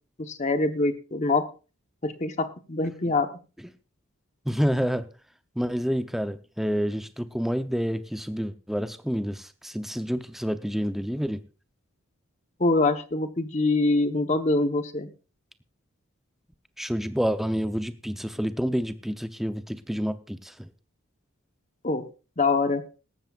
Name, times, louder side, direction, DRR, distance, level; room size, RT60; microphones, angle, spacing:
voice 1, 0.2-1.4 2.0-3.3 12.6-15.1 21.8-22.0 22.4-22.8, left 3 dB, 35° left, 9 dB, 1.1 m, -24 dB
voice 2, 4.5-5.1 5.6-11.4 16.8-20.7, equal, ahead, 10 dB, 0.7 m, -28 dB
17.5 x 13.5 x 2.4 m, 0.34 s
head